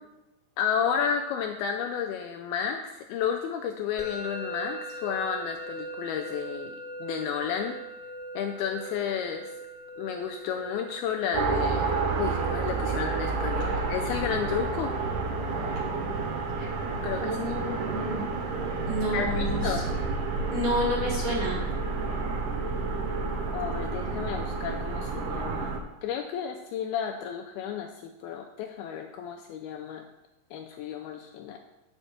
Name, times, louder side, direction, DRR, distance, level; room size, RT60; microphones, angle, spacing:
voice 1, 0.6-6.8 7.0-7.8 8.4-9.5 10.0-15.0 17.0-17.6 19.1-19.9 23.5-25.8 26.0-30.0 30.5-31.6, left 7 dB, 90° left, 4 dB, 2.2 m, -32 dB
Musical instrument, 4.0-22.9, right 1 dB, ahead, 3.1 m, -43 dB
sound 1, 11.3-25.8, right 4 dB, 85° right, 1.7 m, -30 dB
voice 2, 17.2-18.3 18.9-19.8 20.5-21.6, equal, 45° right, -3 dB, 2.4 m, -30 dB
9.7 x 5.1 x 6.5 m, 0.98 s
omnidirectional pair, 5.0 m